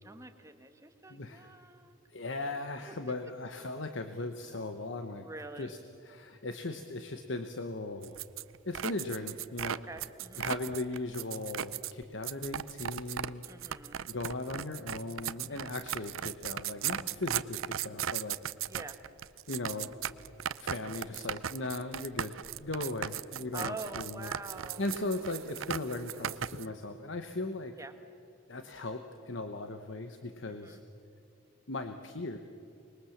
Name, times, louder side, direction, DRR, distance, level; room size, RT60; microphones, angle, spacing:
voice 1, 0.0-2.0 2.8-2.9 5.2-5.7 9.8-10.5 13.5-14.1 15.5-15.8 18.7-19.0 23.5-24.8 27.7-27.9 30.5-30.8, right 2 dB, 15° right, 7 dB, 1.4 m, -45 dB
voice 2, 1.1-1.5 2.1-5.3 5.6-5.8 6.1-8.2 8.6-9.8 10.4-13.4 14.1-18.4 19.5-20.0 20.6-22.3 22.6-24.3 24.8-27.7 28.5-30.8 31.7-32.4, left 2 dB, 70° left, 7 dB, 1.1 m, -38 dB
sound 1, 8.0-26.7, right 10 dB, 90° right, 0.5 m, -37 dB
25.5 x 21.0 x 7.3 m, 2.5 s
head